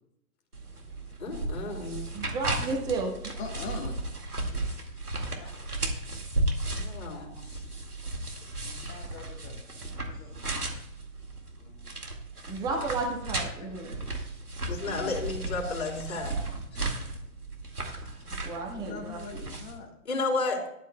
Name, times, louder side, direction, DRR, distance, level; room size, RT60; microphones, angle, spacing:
sound 1, 0.5-19.8, right 2 dB, 85° right, 2.1 m, -35 dB
voice 1, 1.2-2.1 4.6-4.7 6.7-7.5 11.6-11.7 14.7-16.8 20.1-20.6, left 3 dB, 50° left, -3 dB, 3.8 m, -33 dB
voice 2, 2.1-3.1 8.6-8.7 12.5-14.0 18.4-19.4, right 3 dB, 10° right, 1 dB, 1.2 m, -32 dB
voice 3, 3.4-4.0 5.4-5.5 7.0-7.2 7.7-7.8 8.8-9.6 9.9-10.6 13.6-13.7 14.1-14.2 14.8-15.1 18.7-19.9, left 4 dB, 15° left, 2 dB, 1.6 m, -42 dB
17.5 x 11.5 x 2.2 m, 0.79 s
figure-of-eight pair, 125°, 44 cm